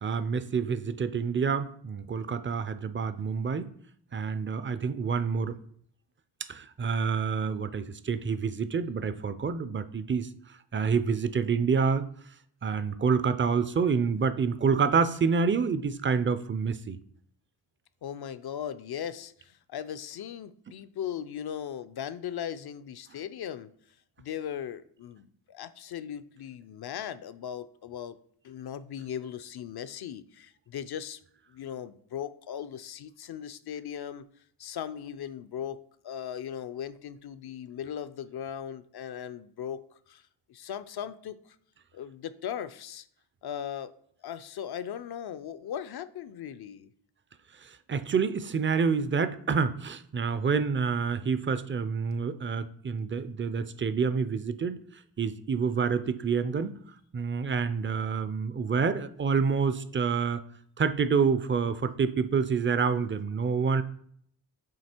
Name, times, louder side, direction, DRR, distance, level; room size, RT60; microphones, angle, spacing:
voice 1, 0.0-3.7 4.1-5.6 6.5-10.3 10.7-12.0 12.6-17.0 47.6-54.8 55.2-56.8 57.1-60.4 60.8-63.8, right 5 dB, 30° right, 13 dB, 0.4 m, -27 dB
voice 2, 18.0-23.7 24.2-28.2 28.4-31.2 31.5-34.2 34.6-40.2 40.5-41.6 41.9-43.1 43.4-43.9 44.2-46.9, left 9 dB, 60° left, 13 dB, 0.5 m, -38 dB
7.5 x 2.8 x 4.4 m, 0.63 s
cardioid pair, 75°, 44 cm